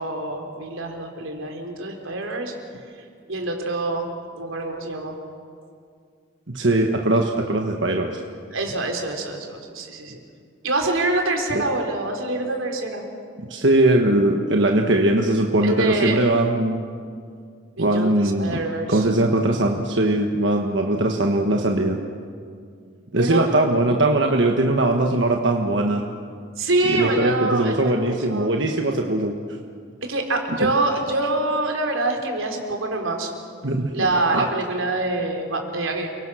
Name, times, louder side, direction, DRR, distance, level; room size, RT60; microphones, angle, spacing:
voice 1, 0.0-2.5 3.3-4.1 4.3-5.2 8.5-10.2 10.6-13.0 15.6-16.2 17.8-19.0 23.2-23.5 26.6-28.5 30.1-33.3 33.9-36.1, right 2 dB, 85° right, 3 dB, 3.9 m, -25 dB
voice 2, 6.5-8.2 11.5-11.6 13.5-16.8 17.8-18.6 18.9-22.0 23.1-26.0 26.9-29.3 30.6-30.7 33.6-34.5, right 1 dB, 60° right, 2 dB, 1.4 m, -20 dB
29.5 x 23.0 x 6.4 m, 2.2 s
head